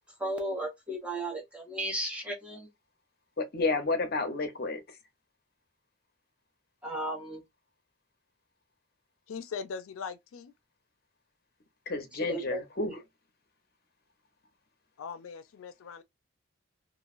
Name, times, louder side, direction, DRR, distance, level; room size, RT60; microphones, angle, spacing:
voice 1, 0.2-2.7 6.8-7.4 12.2-12.6 12.9-13.0, right 1 dB, 5° right, 0.6 m, -35 dB
voice 2, 3.4-4.8 11.9-12.9, left 3 dB, 50° left, 0.6 m, -30 dB
voice 3, 9.3-10.5 15.0-16.0, left 5 dB, 85° left, 0.4 m, -40 dB
3.0 x 2.4 x 2.4 m
head